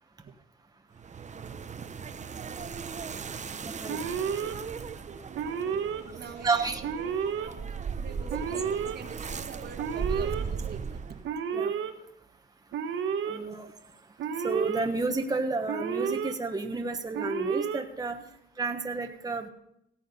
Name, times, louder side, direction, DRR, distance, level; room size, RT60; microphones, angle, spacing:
sound 1, 0.9-11.3, right 6 dB, 35° right, 0.9 m, -37 dB
voice 1, 3.6-4.0 6.4-6.8 11.5-11.7 13.2-13.7 14.4-18.2 18.6-19.5, right 3 dB, 20° right, 4 dB, 1.3 m, -31 dB
Alarm, 3.9-4.5 5.3-6.0 6.8-7.5 8.3-9.0 9.8-10.4 11.2-11.9 12.7-13.4 14.2-14.9 15.7-16.3 17.1-17.8, right 7 dB, 75° right, 1.3 m, -31 dB
voice 2, 5.6-7.1 7.9-10.8 13.3-13.5 18.1-18.3, right 6 dB, 55° right, 7 dB, 1.6 m, -46 dB
17.0 x 7.8 x 5.5 m, 0.78 s
cardioid pair, 90°, 20 cm